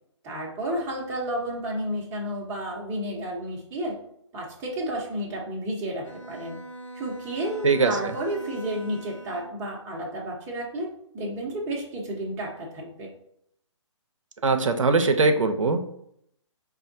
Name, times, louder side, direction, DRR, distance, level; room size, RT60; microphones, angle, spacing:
voice 1, 0.2-4.0 4.3-6.6 6.9-10.9 11.1-13.1, right 1 dB, 15° right, -2 dB, 0.7 m, -31 dB
Bowed string instrument, 6.0-9.7, right 1 dB, 75° left, 0.8 m, -42 dB
voice 2, 14.4-15.9, right 3 dB, 85° right, 6 dB, 0.5 m, -21 dB
4.8 x 2.3 x 2.6 m, 0.72 s
figure-of-eight pair, 140°, 16 cm